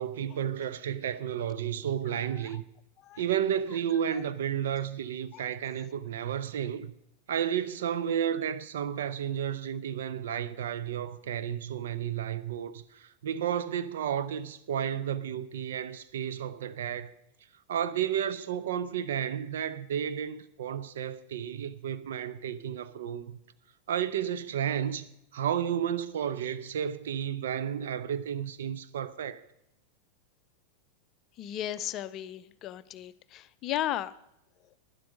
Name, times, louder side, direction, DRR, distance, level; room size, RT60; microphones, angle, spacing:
voice 1, 0.0-2.6 3.2-6.9 7.3-17.1 17.7-23.4 23.9-29.4, right 9 dB, 60° right, 0.7 m, -32 dB
voice 2, 31.4-34.1, left 12 dB, 35° left, 0.5 m, -35 dB
12.0 x 10.5 x 5.2 m
figure-of-eight pair, 90°, 0 cm